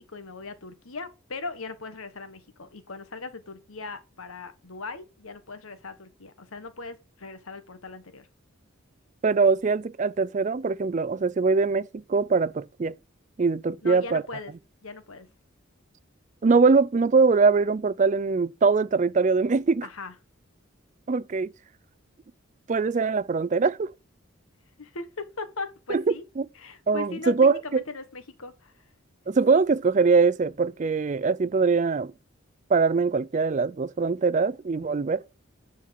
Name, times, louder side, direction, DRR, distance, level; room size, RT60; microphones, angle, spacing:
voice 1, 0.0-8.3 13.8-14.5 14.8-15.3 19.8-20.1 24.8-26.2 26.5-28.8, left 3 dB, 85° left, 1.4 m, -39 dB
voice 2, 9.2-12.9 13.4-14.2 16.4-19.9 21.1-21.5 22.7-23.9 25.9-26.0 26.4-26.5 26.9-27.8 29.3-32.1 32.7-35.2, right 4 dB, 35° right, 0.4 m, -22 dB
10.5 x 4.6 x 5.8 m
head